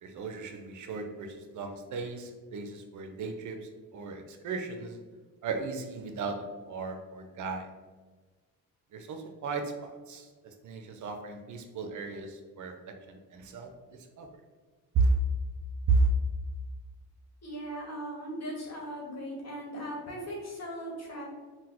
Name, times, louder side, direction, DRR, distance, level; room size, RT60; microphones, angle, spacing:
voice 1, 0.0-5.0 5.4-7.7 8.9-14.3 14.9-15.2 15.9-16.1, right 4 dB, 50° right, 5 dB, 0.6 m, -33 dB
voice 2, 17.4-21.2, equal, 40° left, -2 dB, 1.2 m, -38 dB
3.7 x 2.2 x 2.9 m, 1.4 s
supercardioid pair, 70°, 38 cm